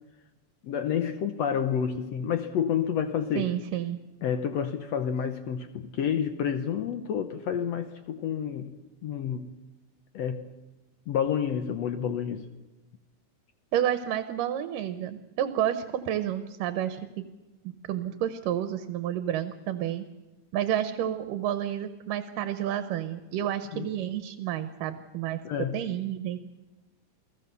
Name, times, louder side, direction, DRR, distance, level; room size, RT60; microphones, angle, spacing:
voice 1, 0.6-3.5 4.2-8.8 9.0-9.5 10.1-10.5 11.1-12.5 23.7-23.9 25.4-25.8, left 8 dB, 65° left, 8 dB, 1.7 m, -29 dB
voice 2, 3.4-4.0 13.7-17.3 17.6-20.0 20.5-25.4 25.7-26.4, right 11 dB, 80° right, 10 dB, 2.6 m, -30 dB
28.5 x 18.5 x 6.8 m, 1.1 s
omnidirectional pair, 3.8 m